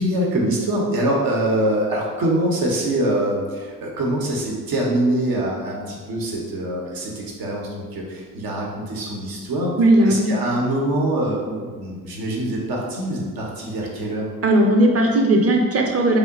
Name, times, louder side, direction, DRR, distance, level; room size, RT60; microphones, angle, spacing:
voice 1, 0.0-9.7 10.0-14.3, right 1 dB, 70° right, -2 dB, 0.8 m, -24 dB
voice 2, 9.8-10.3 14.4-16.2, right 1 dB, 40° right, 1 dB, 0.7 m, -17 dB
2.9 x 2.1 x 3.4 m, 1.5 s
supercardioid pair, 45°, 36 cm